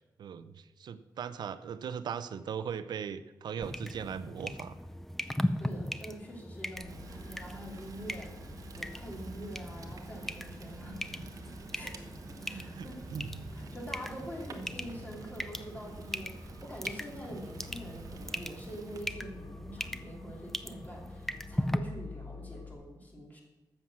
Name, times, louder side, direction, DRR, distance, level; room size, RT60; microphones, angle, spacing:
voice 1, 0.0-4.8 12.4-13.5, right 7 dB, 85° right, 13 dB, 0.7 m, -39 dB
sound 1, 3.6-21.8, left 1 dB, 5° left, 0.4 m, -39 dB
voice 2, 5.6-8.4 8.7-11.2 11.7-13.0 13.5-23.4, equal, 25° left, -2 dB, 2.8 m, -45 dB
sound 2, 6.7-22.7, left 3 dB, 55° left, 2.4 m, -51 dB
Fire, 6.9-19.0, right 4 dB, 55° right, 1.0 m, -50 dB
13.0 x 7.8 x 6.1 m, 1.1 s
wide cardioid pair, 175°, 7 cm